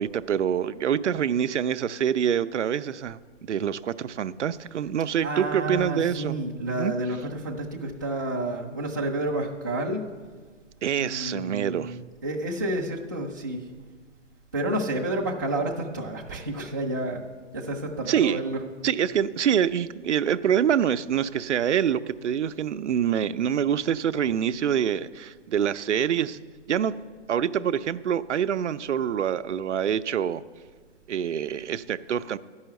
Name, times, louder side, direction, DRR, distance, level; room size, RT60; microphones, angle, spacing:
voice 1, 0.0-6.4 6.7-6.9 10.8-12.0 18.1-18.4 18.8-26.4 26.7-26.9 27.3-30.4 31.1-32.4, right 9 dB, 70° right, 13 dB, 0.5 m, -26 dB
voice 2, 5.2-10.1 11.0-13.6 14.5-17.2 17.5-18.6, right 1 dB, 15° right, -3 dB, 0.4 m, -30 dB
10.5 x 5.6 x 7.9 m, 1.5 s
hypercardioid pair, 150°, 36 cm